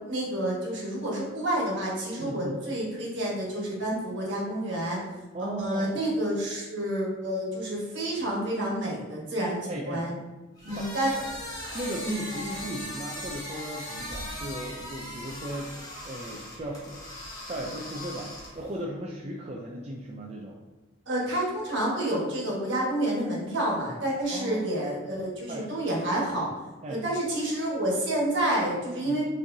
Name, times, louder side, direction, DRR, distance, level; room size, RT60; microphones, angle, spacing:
voice 1, 0.1-5.0 5.4-10.1 10.6-11.1 12.0-12.2 21.1-26.5 26.9-29.2, right 1 dB, 60° right, -3 dB, 1.4 m, -29 dB
voice 2, 2.2-2.6 5.3-6.0 9.7-10.1 10.8-11.3 11.7-17.2 17.5-20.6 24.3-24.9 25.5-25.7 26.8-27.1 29.0-29.2, right 1 dB, 30° right, -2 dB, 0.4 m, -37 dB
sound 1, 10.6-18.8, left 1 dB, 20° left, 0.9 m, -39 dB
5.9 x 3.2 x 2.7 m, 1.2 s
head